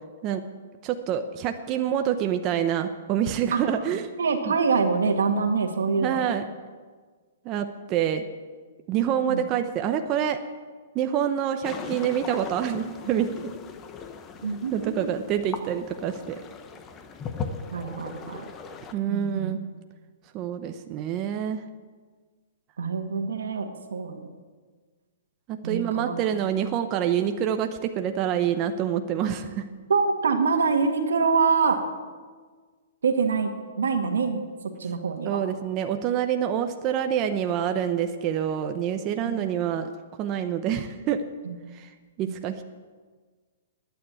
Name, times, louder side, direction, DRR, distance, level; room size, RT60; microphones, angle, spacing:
voice 1, 0.8-4.1 4.5-4.6 6.0-6.5 7.4-8.2 8.9-10.4 10.9-13.5 14.7-16.4 18.9-19.6 20.3-21.6 25.5-29.6 35.2-39.9 40.2-41.2 41.7-41.9 42.2-42.6, right 9 dB, 30° right, 7 dB, 0.8 m, -27 dB
voice 2, 4.2-6.2 9.3-9.4 14.4-15.2 17.7-18.5 19.1-19.5 22.8-24.2 25.6-26.2 29.9-31.8 33.0-33.5 33.8-34.4 34.8-35.4 39.2-39.4 41.5-41.6, right 5 dB, 85° right, 5 dB, 1.9 m, -25 dB
sound 1, 11.6-18.9, left 5 dB, 25° left, 1.0 m, -38 dB
12.0 x 9.5 x 8.3 m, 1.5 s
hypercardioid pair, 140°, 0 cm